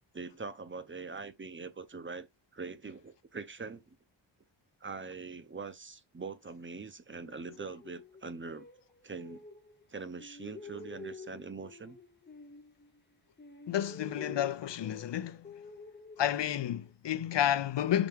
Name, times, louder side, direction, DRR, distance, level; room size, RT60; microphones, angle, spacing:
voice 1, 0.1-2.3 2.5-4.0 4.8-8.7 9.0-9.4 9.9-12.0, right 4 dB, 25° right, 0.6 m, -43 dB
sound 1, 7.1-9.9 10.2-13.1 13.4-16.9, left 4 dB, 25° left, 0.9 m, -49 dB
voice 2, 13.7-15.4 16.2-18.1, left 11 dB, 65° left, 0.6 m, -31 dB
6.0 x 4.7 x 3.5 m
wide cardioid pair, 165°, 46 cm